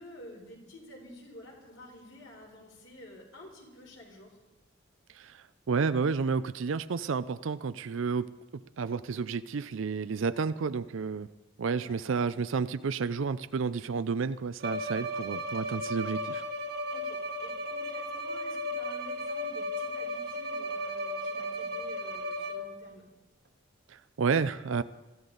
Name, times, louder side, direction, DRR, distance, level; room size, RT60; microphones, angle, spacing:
voice 1, 0.0-4.4 11.8-12.0 16.9-23.1, left 1 dB, 65° left, -1 dB, 4.0 m, -50 dB
voice 2, 5.1-8.3 8.8-11.3 11.6-16.4 23.9-24.8, right 5 dB, 70° right, 13 dB, 0.4 m, -31 dB
Bowed string instrument, 14.6-22.9, equal, 50° right, 1.3 m, -35 dB
24.0 x 13.5 x 4.0 m, 1.1 s
head